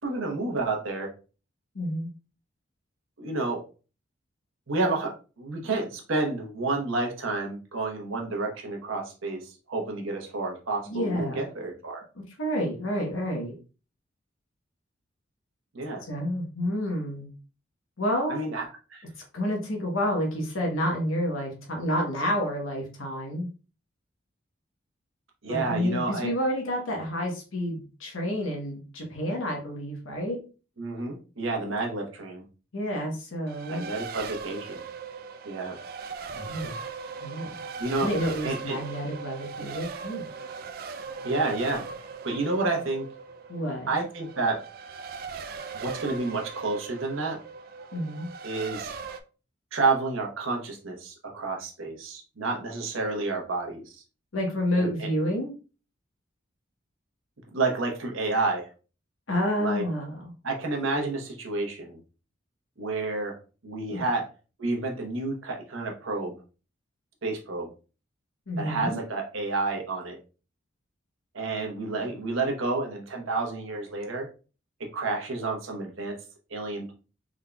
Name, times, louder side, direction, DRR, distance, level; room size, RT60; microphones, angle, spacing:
voice 1, 0.0-1.1 3.2-3.6 4.7-12.0 15.7-16.0 18.3-18.6 18.9-19.0 25.4-26.3 30.8-32.4 33.7-34.8 35.4-35.7 37.8-38.1 38.4-38.8 41.2-41.8 42.2-43.1 43.9-44.6 45.7-47.4 48.4-48.9 49.7-54.0 54.8-55.1 57.5-58.7 59.6-59.8 60.4-62.0 62.8-63.4 63.6-64.2 64.6-66.3 67.2-67.7 68.6-70.2 71.3-74.3 74.9-76.2 76.5-76.9, right 3 dB, 85° right, 1 dB, 1.0 m, -30 dB
voice 2, 1.7-2.1 10.9-11.4 12.1-13.5 16.0-17.3 18.0-18.4 19.3-23.5 25.5-30.4 32.7-33.8 36.3-36.8 37.2-37.5 38.0-40.2 43.5-43.9 47.9-48.3 54.3-55.5 59.3-60.3 63.9-64.1 68.5-69.0, equal, 90° left, 1 dB, 1.0 m, -29 dB
Race car auto racing, 33.5-49.2, right 5 dB, 50° right, 0.3 m, -39 dB
3.7 x 3.6 x 2.2 m, 0.35 s
head